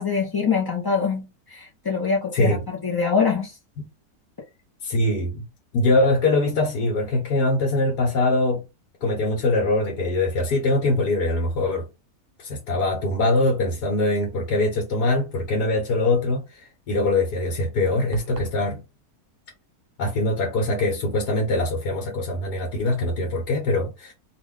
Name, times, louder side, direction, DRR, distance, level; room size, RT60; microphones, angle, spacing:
voice 1, 0.0-2.6 2.8-3.5, left 5 dB, 35° left, 0.3 m, -24 dB
voice 2, 2.3-2.6 4.8-5.5 5.7-8.6 9.0-11.9 12.4-18.8 20.0-24.1, left 2 dB, 85° left, 1.7 m, -23 dB
sound 1, 18.1-18.6, right 8 dB, 85° right, 1.2 m, -36 dB
3.3 x 2.4 x 3.6 m
omnidirectional pair, 1.7 m